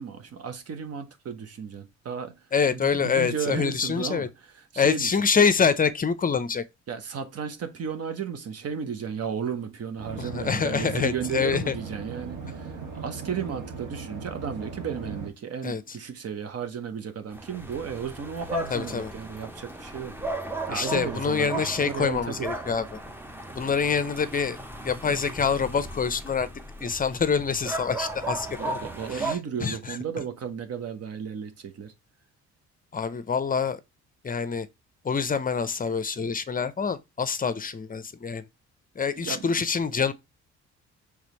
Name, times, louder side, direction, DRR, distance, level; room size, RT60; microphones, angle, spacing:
voice 1, 0.0-5.2 6.9-20.2 20.7-22.5 28.6-31.9 39.1-39.5, right 7 dB, 55° right, 1.1 m, -34 dB
voice 2, 2.5-4.3 4.8-6.6 10.2-11.7 15.6-15.8 18.7-19.1 20.7-23.0 23.5-24.6 24.8-26.5 26.8-28.8 29.1-29.3 29.6-29.8 32.9-33.8 34.2-34.7 35.0-38.4 39.0-40.1, left 6 dB, 30° left, 0.6 m, -26 dB
sound 1, 10.0-15.3, right 5 dB, 80° right, 1.6 m, -38 dB
sound 2, 17.3-29.4, right 2 dB, 5° right, 0.8 m, -36 dB
5.0 x 3.5 x 3.0 m
cardioid pair, 90°, 30 cm